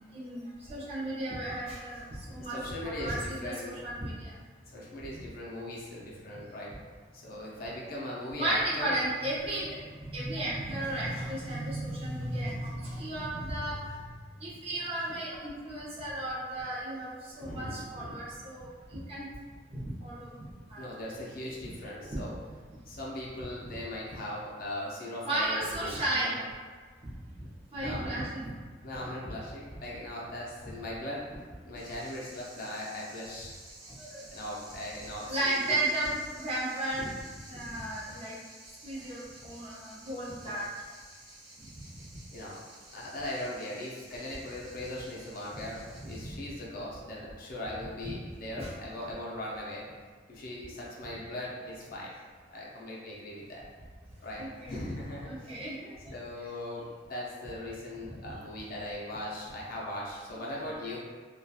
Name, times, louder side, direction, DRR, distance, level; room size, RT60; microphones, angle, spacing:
voice 1, 0.1-2.6 2.8-4.3 8.4-13.8 14.4-19.3 19.7-20.3 20.7-20.8 22.1-22.2 25.2-26.4 27.7-28.5 34.0-34.2 35.3-36.1 36.4-37.1 37.5-38.3 38.8-40.6 46.0-46.4 48.6-48.7 54.4-54.7 55.2-56.0 58.0-58.1 60.5-60.7, right 1 dB, 35° right, -7 dB, 0.6 m, -34 dB
voice 2, 2.4-3.8 4.6-6.7 7.1-9.0 17.4-18.3 20.8-22.4 22.9-26.4 27.8-28.3 28.8-31.3 31.6-33.5 34.3-35.8 40.4-40.6 42.3-42.6 42.9-49.9 50.3-52.1 52.5-53.6 54.2-55.6 56.0-61.0, left 1 dB, 50° left, -4 dB, 0.5 m, -39 dB
sound 1, 31.8-46.2, right 1 dB, 70° right, 0.8 m, -52 dB
2.7 x 2.3 x 2.3 m, 1.5 s
head